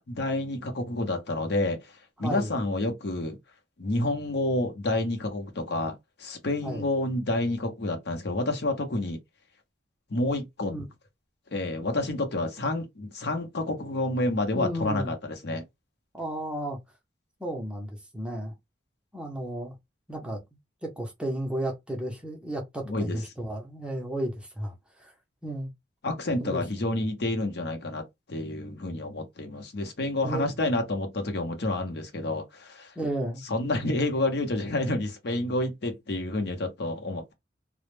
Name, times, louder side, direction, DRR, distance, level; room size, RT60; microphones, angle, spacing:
voice 1, 0.0-3.4 3.8-9.2 10.1-10.7 11.5-15.6 22.9-23.2 26.0-28.0 28.3-32.9 33.4-37.3, left 2 dB, 60° left, 0.7 m, -29 dB
voice 2, 2.2-2.6 6.6-6.8 10.7-10.8 14.5-15.1 16.1-16.8 17.4-18.5 19.1-19.8 20.1-20.4 20.8-25.1 25.4-25.7 26.4-26.6 30.2-30.5 33.0-33.4, right 1 dB, 5° right, 0.5 m, -33 dB
2.1 x 2.0 x 3.0 m
head